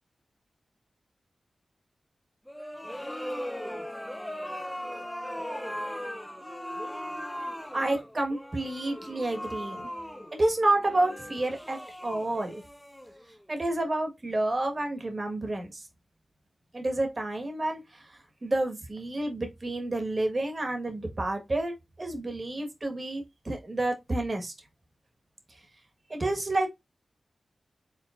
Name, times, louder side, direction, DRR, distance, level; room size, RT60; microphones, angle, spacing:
sound 1, 2.5-13.5, equal, 10° left, 0.6 m, -38 dB
voice 1, 7.7-9.9 10.3-12.6 13.5-15.8 16.7-24.5 26.1-26.7, right 2 dB, 45° right, 1.4 m, -30 dB
4.9 x 3.6 x 2.5 m
cardioid pair, 50°, 0 cm